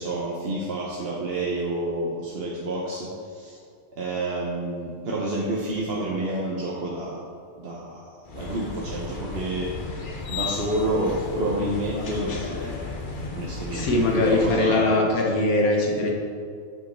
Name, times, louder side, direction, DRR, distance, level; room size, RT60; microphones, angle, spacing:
voice 1, 0.0-3.6 3.9-7.2 7.6-9.9 10.3-12.9 13.3-15.1, right 1 dB, 50° right, -5 dB, 1.1 m, -29 dB
sound 1, 8.2-14.5, left 3 dB, 40° left, 0.9 m, -34 dB
voice 2, 13.7-16.1, left 2 dB, 80° left, 0 dB, 1.6 m, -21 dB
8.0 x 5.2 x 4.4 m, 2.3 s
omnidirectional pair, 1.5 m